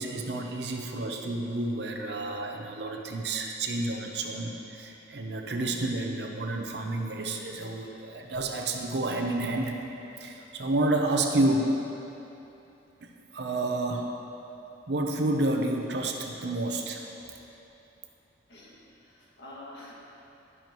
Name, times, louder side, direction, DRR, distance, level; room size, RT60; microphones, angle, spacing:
voice 1, 0.0-9.8 10.2-11.8 13.0-14.1 14.9-17.2, right 2 dB, 65° right, 2 dB, 0.7 m, -30 dB
voice 2, 18.5-19.9, left 1 dB, 65° left, -5 dB, 2.0 m, -47 dB
11.0 x 10.5 x 3.1 m, 2.9 s
head